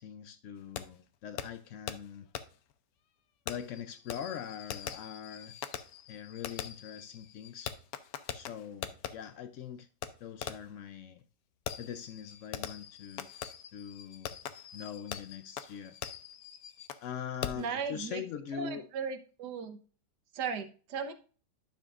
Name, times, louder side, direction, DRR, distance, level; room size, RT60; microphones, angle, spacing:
voice 1, 0.0-2.2 3.5-5.6 6.1-7.7 8.3-9.9 10.2-11.2 11.8-13.3 13.7-14.4 14.7-16.0 17.0-18.9, left 8 dB, 90° left, 0.6 m, -42 dB
Fireworks, 0.8-0.9 1.4-1.5 1.9-2.0 2.4-2.5 3.5-9.1 10.0-10.1 10.4-10.7 11.7-17.1 17.4-17.7, left 9 dB, 65° left, 1.0 m, -42 dB
voice 2, 17.6-18.2 18.5-19.8 20.3-21.1, right 6 dB, 70° right, 1.5 m, -36 dB
10.5 x 6.0 x 2.5 m
omnidirectional pair, 1.9 m